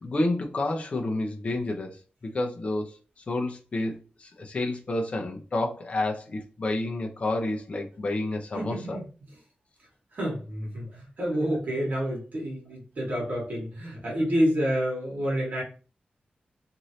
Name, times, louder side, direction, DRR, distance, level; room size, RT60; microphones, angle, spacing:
voice 1, 0.0-3.0 3.3-9.0, left 2 dB, 40° left, 0.6 m, -30 dB
voice 2, 8.5-9.0 10.1-15.6, equal, 55° right, 1.5 m, -28 dB
3.1 x 2.6 x 2.7 m
wide cardioid pair, 125°, 3 cm